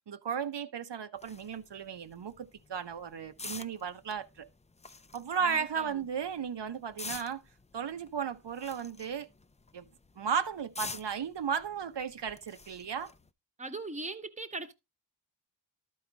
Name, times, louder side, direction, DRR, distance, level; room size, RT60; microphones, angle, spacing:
voice 1, 0.1-4.5 5.1-7.4 7.7-9.3 9.7-9.9 10.2-13.1, right 7 dB, 70° right, 0.8 m, -35 dB
Rake Shoveling, 1.2-13.3, left 3 dB, 15° left, 0.4 m, -48 dB
voice 2, 5.5-5.9 13.6-14.7, right 3 dB, 15° right, 1.0 m, -39 dB
12.5 x 4.7 x 3.8 m
wide cardioid pair, 60°, 44 cm